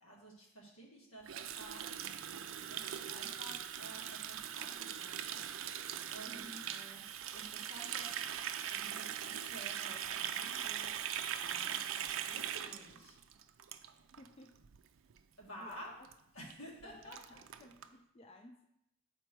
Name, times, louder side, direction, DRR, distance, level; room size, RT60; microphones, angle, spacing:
voice 1, 0.0-1.9 2.7-5.4 6.1-6.4 6.7-7.0 7.3-8.1 8.6-10.9 11.4-11.8 12.3-13.2 15.4-15.9 16.3-17.4, right 1 dB, 80° left, -2 dB, 1.8 m, -52 dB
Water tap faucet, 1.3-14.3 14.6-14.8 15.1-15.4 15.7-15.8 16.0-16.1 16.5-16.6 16.8-17.9, right 9 dB, 70° right, 0.4 m, -41 dB
voice 2, 6.2-6.7 14.2-14.6 15.6-16.1 16.8-17.2 17.6-18.6, left 1 dB, 30° left, 4 dB, 0.4 m, -55 dB
6.6 x 4.3 x 4.5 m, 0.79 s
head